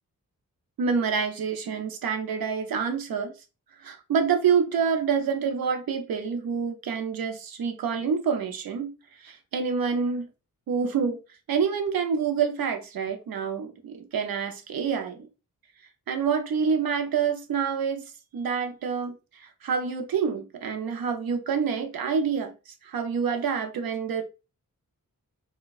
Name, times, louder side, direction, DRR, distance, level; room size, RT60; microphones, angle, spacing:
voice 1, 0.8-3.3 3.8-8.9 9.2-10.3 10.7-11.2 11.5-15.3 16.1-18.0 18.3-24.2, right 6 dB, 85° right, 0.6 m, -27 dB
4.3 x 2.2 x 2.4 m
cardioid pair, 75°, 34 cm